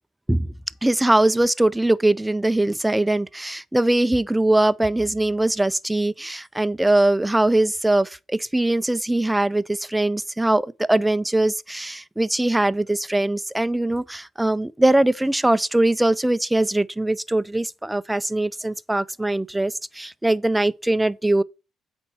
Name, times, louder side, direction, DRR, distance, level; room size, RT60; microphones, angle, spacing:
voice 1, 0.8-21.4, right 1 dB, 10° right, 0.5 m, -21 dB
8.2 x 4.4 x 6.1 m
supercardioid pair, 75°, 0 cm